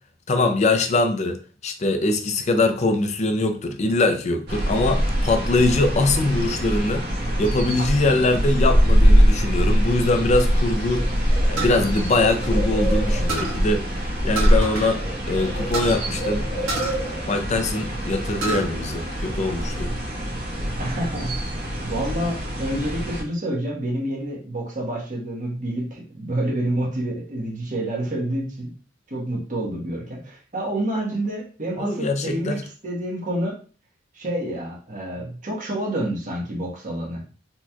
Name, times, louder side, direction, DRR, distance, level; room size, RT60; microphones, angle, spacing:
voice 1, 0.3-1.4 1.6-7.0 7.4-11.0 11.5-13.9 14.2-15.0 15.3-16.4 17.3-19.9 31.8-32.6, left 2 dB, 35° left, 7 dB, 0.5 m, -22 dB
sound 1, 4.5-23.2, equal, 55° right, 1.4 m, -23 dB
Bird, 10.5-10.6 10.9-13.4 14.5-14.7 15.0-17.4, right 1 dB, 75° left, 1.2 m, -32 dB
sound 2, 11.6-12.9 13.3-13.6 14.4-15.0 15.2-15.3 15.7-16.0 16.7-17.8 18.2-18.7 19.1-19.9, right 3 dB, 85° right, 1.4 m, -29 dB
voice 2, 20.8-21.3 21.8-28.7 29.1-33.6 34.1-37.2, right 1 dB, 40° right, -2 dB, 1.2 m, -28 dB
4.2 x 2.9 x 2.2 m, 0.38 s
head